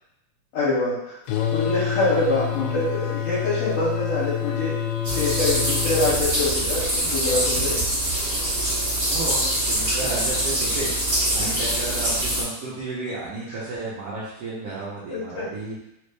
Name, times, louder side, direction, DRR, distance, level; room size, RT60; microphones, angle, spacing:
voice 1, 0.5-1.2 1.5-4.8 5.1-7.8 9.8-10.1 11.4-11.5 13.5-13.6 15.1-15.5, left 2 dB, 75° left, -10 dB, 2.5 m, -25 dB
sound 1, 1.3-6.2, left 9 dB, 90° left, 2.3 m, -27 dB
sound 2, 5.0-12.4, right 1 dB, 35° right, 1.7 m, -24 dB
voice 2, 9.1-10.9 11.3-15.7, right 3 dB, 75° right, -9 dB, 1.4 m, -32 dB
5.3 x 2.6 x 3.3 m, 0.82 s
omnidirectional pair, 3.9 m